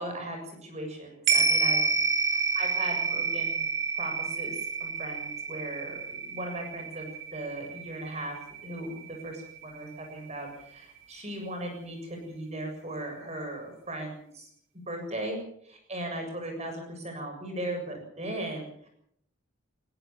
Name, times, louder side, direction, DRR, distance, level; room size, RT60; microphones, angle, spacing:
voice 1, 0.0-1.9 2.5-3.7 3.9-8.4 8.6-14.5 14.9-15.4 15.6-18.9, right 1 dB, 30° right, 4 dB, 7.4 m, -37 dB
sound 1, 1.3-9.8 10.2-10.3, right 4 dB, 60° right, 4.6 m, -29 dB
20.5 x 18.5 x 7.4 m, 0.69 s
head